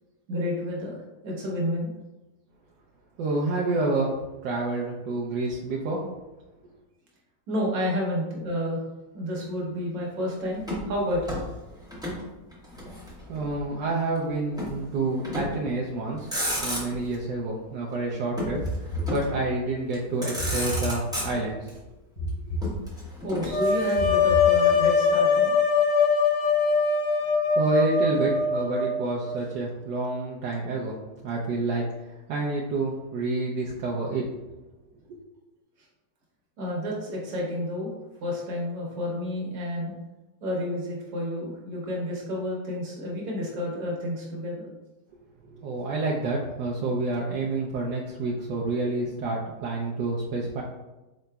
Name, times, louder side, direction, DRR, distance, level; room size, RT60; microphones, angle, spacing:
voice 1, 0.3-1.9 7.5-8.8 9.1-11.4 23.2-25.6 36.6-37.9 38.2-39.9 40.4-44.7, left 1 dB, 60° right, -3 dB, 1.5 m, -30 dB
voice 2, 3.2-6.0 13.3-16.3 16.6-21.7 22.4-22.5 27.6-31.0 31.2-34.2 35.1-35.2 45.4-50.6, right 2 dB, 80° right, -3 dB, 1.2 m, -28 dB
Motor vehicle (road), 10.6-12.2 12.5-13.6 14.6-14.8 15.2-15.7 16.1-17.2 18.4-19.4 19.9-20.0 20.2-21.7 22.6-24.2, equal, 5° right, 0.4 m, -33 dB
sound 1, 18.6-19.7 20.4-21.5 22.2-23.3 23.9-25.1, equal, 40° left, 1.0 m, -33 dB
sound 2, 23.5-29.4, left 5 dB, 90° left, 1.3 m, -22 dB
4.1 x 3.8 x 2.2 m, 1.1 s
omnidirectional pair, 1.9 m